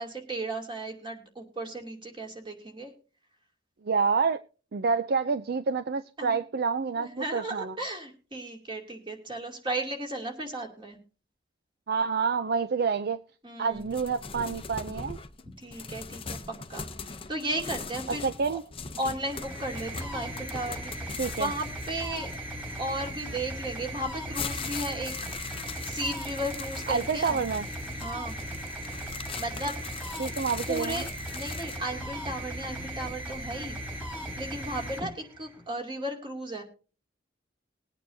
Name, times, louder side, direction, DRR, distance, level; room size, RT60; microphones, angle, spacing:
voice 1, 0.0-2.9 6.2-6.4 6.9-11.0 13.4-13.8 15.6-16.4 16.7-18.6 19.0-22.3 22.8-25.1 25.8-27.4 27.9-28.4 29.3-30.2 30.7-31.1 31.3-33.8 34.2-36.6, right 1 dB, 25° right, 2 dB, 2.6 m, -35 dB
voice 2, 3.8-4.4 4.7-7.7 11.9-13.2 13.6-15.2 18.2-18.6 21.2-21.5 26.9-27.7 30.2-31.0, right 5 dB, 55° right, 12 dB, 0.4 m, -28 dB
sound 1, 13.7-23.2 23.8-31.9, left 5 dB, 30° left, 0.7 m, -41 dB
sound 2, 19.1-35.7, right 1 dB, 10° right, 3.3 m, -38 dB
21.5 x 9.1 x 2.7 m, 0.36 s
head